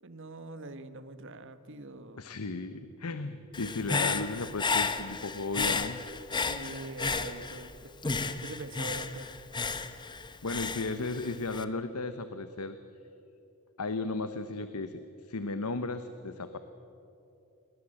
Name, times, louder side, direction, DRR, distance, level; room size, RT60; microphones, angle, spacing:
voice 1, 0.0-2.3 6.3-9.3, right 2 dB, 55° right, 11 dB, 1.4 m, -44 dB
voice 2, 2.2-6.0 10.4-12.8 13.8-15.0 15.3-16.6, left 3 dB, 85° left, 10 dB, 1.0 m, -35 dB
Human voice / Breathing, 3.5-7.7 8.0-11.6, left 4 dB, 20° left, 0.9 m, -33 dB
28.0 x 20.5 x 7.8 m, 3.0 s
head